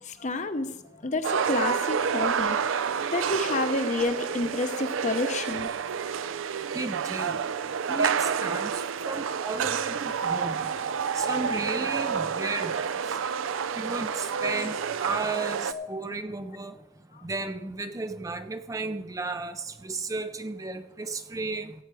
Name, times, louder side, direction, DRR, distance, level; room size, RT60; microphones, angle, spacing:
voice 1, 0.0-2.6 3.1-5.7 13.4-13.6 15.7-15.9 17.1-17.2, left 2 dB, 35° left, 9 dB, 0.8 m, -29 dB
sound 1, 1.2-15.7, right 6 dB, 80° right, 0.4 m, -29 dB
voice 2, 6.7-7.4 7.9-8.7 9.1-10.7 11.1-12.9 13.8-16.8 17.2-21.7, right 3 dB, 15° right, 9 dB, 0.4 m, -34 dB
16.0 x 8.0 x 4.8 m, 0.97 s
head